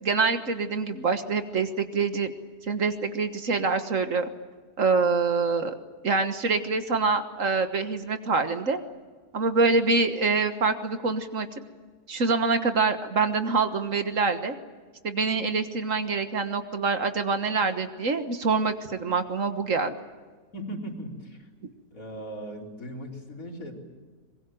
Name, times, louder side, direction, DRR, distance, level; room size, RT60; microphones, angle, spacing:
voice 1, 0.0-2.3 2.6-4.3 4.8-5.8 6.0-8.8 9.3-11.5 12.1-14.6 15.0-20.0, right 4 dB, 55° right, 8 dB, 1.7 m, -25 dB
voice 2, 20.5-21.5 21.9-23.7, right 1 dB, 55° left, 0 dB, 4.5 m, -38 dB
24.0 x 22.0 x 9.1 m, 1.4 s
omnidirectional pair, 1.7 m